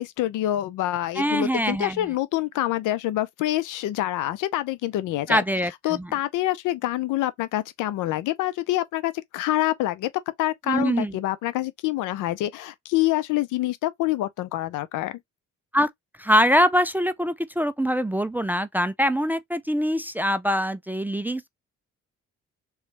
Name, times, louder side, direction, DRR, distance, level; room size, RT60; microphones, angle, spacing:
voice 1, 0.0-5.4 5.8-10.1 10.4-15.2, left 15 dB, 90° left, 0.6 m, -26 dB
voice 2, 1.2-2.1 5.3-6.1 10.7-11.1 15.7-15.9 16.2-21.5, equal, 5° right, 0.3 m, -23 dB
3.2 x 3.1 x 3.1 m
cardioid pair, 90°, 30 cm